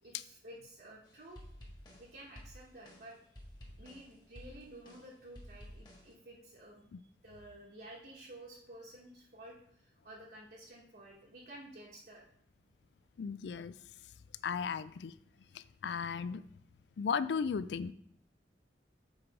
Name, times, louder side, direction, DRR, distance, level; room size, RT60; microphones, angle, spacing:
voice 1, 0.0-1.4 2.0-3.2 3.8-6.8 7.2-12.2 15.4-15.5, right 1 dB, 55° right, -4 dB, 1.2 m, -52 dB
sound 1, 1.0-6.1, equal, 25° left, 1.6 m, -53 dB
voice 2, 13.2-13.7 14.4-15.1 15.5-16.4 17.0-17.9, left 6 dB, 75° left, 15 dB, 0.4 m, -35 dB
7.5 x 4.7 x 4.8 m, 0.70 s
head